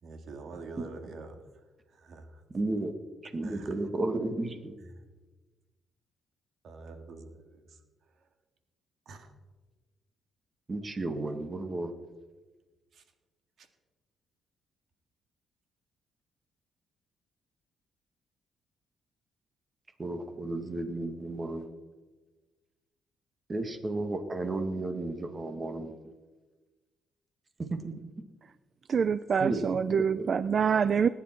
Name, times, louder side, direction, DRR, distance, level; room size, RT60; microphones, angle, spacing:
voice 1, 0.0-2.4 3.4-3.8 4.8-5.0 6.6-7.8 8.1-8.3 9.1-9.3 12.9-13.0 13.6-13.7, right 3 dB, 65° right, 6 dB, 2.0 m, -47 dB
voice 2, 2.5-2.9 3.3-4.8 10.7-11.9 20.0-21.7 23.5-26.0 27.6-28.0 29.4-30.3, right 2 dB, 30° right, 7 dB, 1.8 m, -33 dB
voice 3, 28.9-31.1, right 6 dB, 50° right, 15 dB, 0.4 m, -26 dB
20.0 x 10.5 x 4.6 m, 1.2 s
cardioid pair, 90°, 0 cm